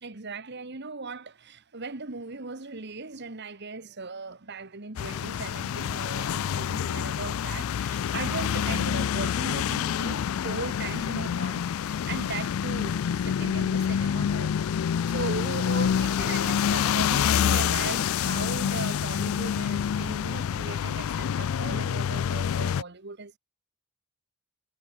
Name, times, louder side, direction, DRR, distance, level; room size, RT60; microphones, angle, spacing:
voice 1, 0.0-14.6 15.1-23.4, right 3 dB, 55° right, 1.6 m, -38 dB
sound 1, 5.0-22.8, left 8 dB, 85° left, 0.4 m, -27 dB
head